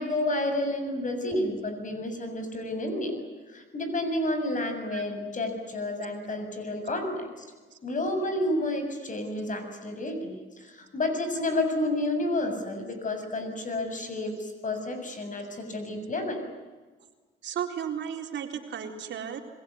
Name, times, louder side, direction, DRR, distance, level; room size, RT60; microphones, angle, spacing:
voice 1, 0.0-3.2 3.5-7.4 7.8-16.4, left 1 dB, 40° left, 7 dB, 6.9 m, -30 dB
voice 2, 17.4-19.4, right 8 dB, 65° right, 4 dB, 4.0 m, -34 dB
27.0 x 22.0 x 9.5 m, 1.3 s
cardioid pair, 90°, 20 cm